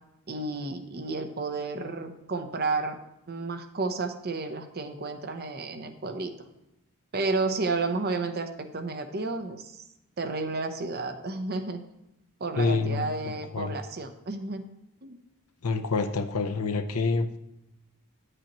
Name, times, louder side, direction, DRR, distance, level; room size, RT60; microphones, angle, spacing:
voice 1, 0.3-3.0 3.3-6.3 7.1-9.8 10.2-11.8 12.4-14.6 15.0-15.2, right 3 dB, 45° right, 7 dB, 0.7 m, -31 dB
voice 2, 12.6-13.7 15.6-17.4, left 3 dB, 80° left, 7 dB, 0.7 m, -27 dB
10.0 x 8.0 x 3.0 m, 0.91 s
head